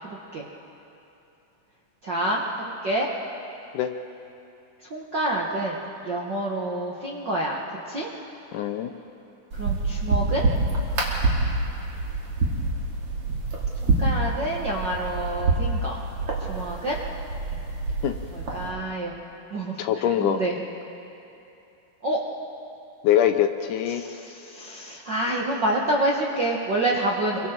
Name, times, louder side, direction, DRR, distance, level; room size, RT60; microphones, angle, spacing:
voice 1, 0.0-0.5 2.0-3.1 4.8-8.1 9.5-10.5 13.8-16.0 16.5-17.0 18.3-19.1 19.5-20.6 22.0-22.2 23.9-27.5, right 1 dB, 65° right, -3 dB, 1.1 m, -28 dB
voice 2, 8.5-8.9 18.0-18.1 19.8-20.4 23.0-24.0, left 10 dB, 75° left, 7 dB, 1.9 m, -23 dB
sound 1, 9.5-18.7, right 3 dB, 40° right, 3.3 m, -26 dB
28.0 x 23.5 x 4.6 m, 2.8 s
omnidirectional pair, 4.3 m